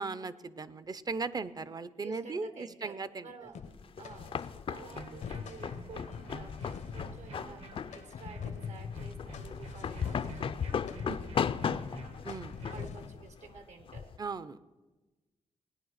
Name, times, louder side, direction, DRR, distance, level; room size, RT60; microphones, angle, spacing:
voice 1, 0.0-3.3 11.1-11.2 12.2-12.5 14.2-14.6, right 4 dB, 30° right, 16 dB, 0.5 m, -37 dB
voice 2, 2.0-3.6 4.0-12.1 12.7-14.1, right 4 dB, 75° right, 8 dB, 1.6 m, -51 dB
sound 1, 3.6-4.6 5.0-13.3, left 7 dB, 90° left, 1.0 m, -44 dB
sound 2, 3.7-14.2, left 7 dB, 50° left, 0.4 m, -37 dB
sound 3, 4.7-12.9, right 3 dB, 55° right, 1.1 m, -49 dB
17.5 x 9.9 x 6.5 m, 1.2 s
wide cardioid pair, 110°, 12 cm